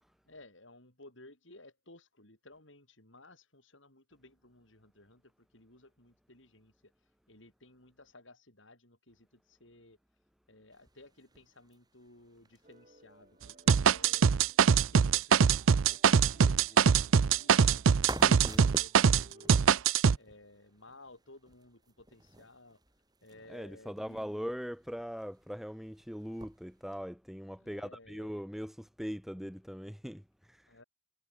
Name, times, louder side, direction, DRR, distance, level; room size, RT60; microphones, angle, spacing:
voice 1, 0.2-6.9 7.3-10.0 10.5-14.3 14.7-17.9 18.4-19.7 20.1-22.8 23.2-24.5 27.6-28.5 30.7-30.8, left 2 dB, 70° left, 7.8 m, -57 dB
sound 1, 10.7-27.0, right 2 dB, 20° right, 6.0 m, -51 dB
sound 2, 12.6-19.8, right 1 dB, 35° right, 5.0 m, -62 dB
sound 3, 13.7-19.2 19.5-20.2, right 6 dB, 80° right, 0.5 m, -23 dB
voice 2, 18.2-18.7 23.5-30.7, equal, ahead, 2.2 m, -41 dB
head